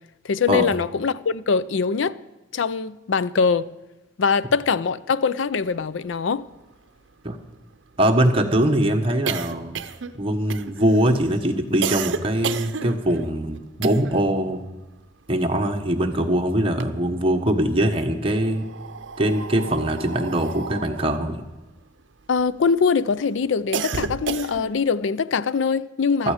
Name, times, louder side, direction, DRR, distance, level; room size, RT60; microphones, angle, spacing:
voice 1, 0.2-2.2 2.5-3.7 4.2-6.4 22.3-26.3, left 5 dB, 75° left, 0.5 m, -22 dB
sound 1, 6.1-6.2 6.5-6.6 6.9-14.4 14.6-16.2 16.5-17.5 18.2-22.7 23.1-24.9, right 6 dB, 75° right, 0.7 m, -33 dB
voice 2, 8.0-9.8 10.2-14.6 15.3-18.6 19.2-21.4 26.2-26.3, right 1 dB, 30° right, 1.3 m, -22 dB
15.0 x 13.0 x 5.0 m
head